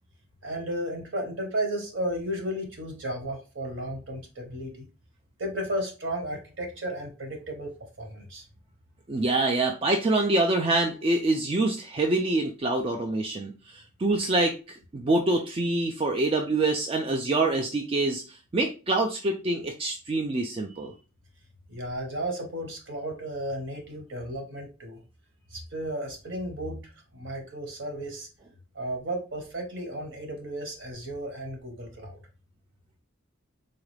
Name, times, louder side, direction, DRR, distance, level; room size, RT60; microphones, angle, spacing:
voice 1, 0.4-4.8 5.4-7.7 8.0-8.5 21.7-25.0 25.5-28.3 28.7-32.2, right 1 dB, 65° right, 2 dB, 1.2 m, -34 dB
voice 2, 9.1-20.9, right 2 dB, 25° right, 3 dB, 0.3 m, -26 dB
3.8 x 2.4 x 3.2 m, 0.33 s
head